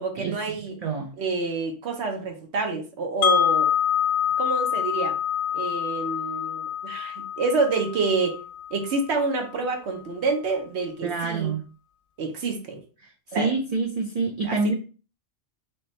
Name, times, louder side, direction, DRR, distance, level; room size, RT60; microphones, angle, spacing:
voice 1, 0.0-0.7 1.2-3.7 4.4-5.2 5.5-8.4 8.7-11.5 12.2-12.8 13.3-13.5 14.4-14.7, right 4 dB, 70° right, 4 dB, 1.1 m, -28 dB
voice 2, 0.8-1.1 11.0-11.6 13.0-14.7, right 4 dB, 50° right, 1 dB, 0.5 m, -27 dB
Wind chime, 3.2-9.2, left 9 dB, 85° left, 0.9 m, -26 dB
3.4 x 2.9 x 3.1 m, 0.36 s
omnidirectional pair, 1.2 m